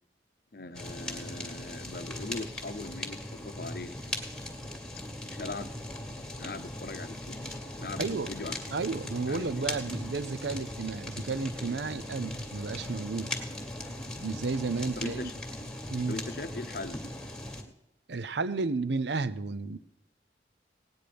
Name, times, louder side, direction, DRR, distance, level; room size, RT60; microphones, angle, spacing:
voice 1, 0.5-4.0 5.2-5.7 6.4-7.4 7.8-8.8 9.3-9.8 15.0-15.3 16.1-17.0, left 2 dB, 55° left, 0.7 m, -40 dB
Fire, 0.7-17.6, left 1 dB, 5° left, 1.7 m, -39 dB
voice 2, 8.0-8.3 8.7-13.3 14.2-15.3 15.9-16.2 18.1-19.8, right 4 dB, 80° right, 0.6 m, -32 dB
17.5 x 9.6 x 5.1 m
head